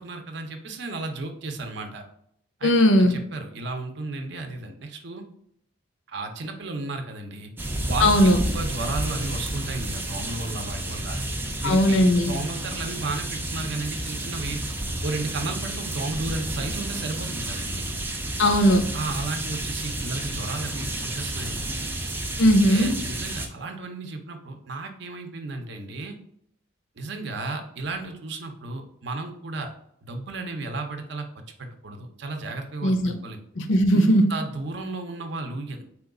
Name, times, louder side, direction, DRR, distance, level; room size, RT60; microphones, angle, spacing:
voice 1, 0.0-2.0 2.6-2.7 3.0-5.2 6.1-7.5 7.9-11.2 11.6-14.6 15.0-17.9 18.9-22.1 22.7-26.2 27.0-29.7 30.0-31.3 31.6-33.4 33.9-35.8, right 3 dB, 60° right, 5 dB, 0.6 m, -33 dB
voice 2, 2.6-3.2 8.0-8.4 11.6-12.3 18.4-18.9 22.4-22.9 32.8-33.1 33.6-34.3, equal, 70° left, 7 dB, 0.6 m, -18 dB
sound 1, 7.6-23.5, right 1 dB, 10° right, 0.4 m, -31 dB
4.3 x 2.3 x 3.7 m, 0.71 s
head